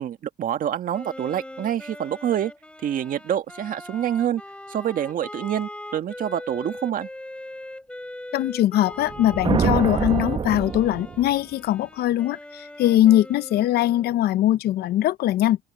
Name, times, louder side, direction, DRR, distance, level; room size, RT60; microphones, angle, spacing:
voice 1, 0.0-2.5 2.8-4.4 4.7-7.1, right 10 dB, 55° right, 1.7 m, -26 dB
Wind instrument woodwind instrument, 0.9-14.3, left 1 dB, 5° left, 5.2 m, -41 dB
voice 2, 8.3-15.6, left 13 dB, 70° left, 0.7 m, -21 dB
sound 1, 9.0-11.5, right 6 dB, 30° right, 0.9 m, -25 dB
open air
cardioid pair, 110°, 17 cm